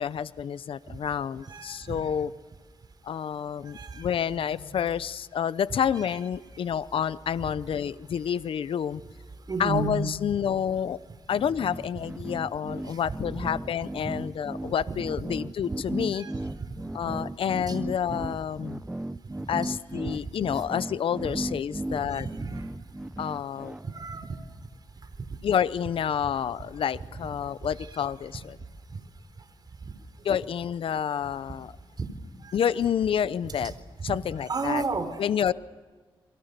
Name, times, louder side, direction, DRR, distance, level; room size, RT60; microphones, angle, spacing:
voice 1, 0.0-2.3 3.0-9.0 9.6-11.0 11.3-16.3 16.9-18.8 19.5-22.3 23.2-23.7 25.4-28.6 30.2-31.7 32.5-33.7 34.0-34.8 35.2-35.5, left 8 dB, 70° left, 17 dB, 0.7 m, -29 dB
voice 2, 1.5-2.1 3.7-4.1 4.3-4.7 9.5-10.1 12.9-13.0 16.1-16.3 16.6-16.7 17.7-17.8 21.2-21.4 22.0-22.6 23.8-24.4 32.0-32.1 32.4-32.5 34.1-34.2 34.5-35.2, right 4 dB, 45° right, 9 dB, 3.6 m, -32 dB
sound 1, 11.3-23.8, right 1 dB, 10° right, 0.8 m, -36 dB
30.0 x 24.0 x 6.8 m, 1.4 s
cardioid pair, 75°, 9 cm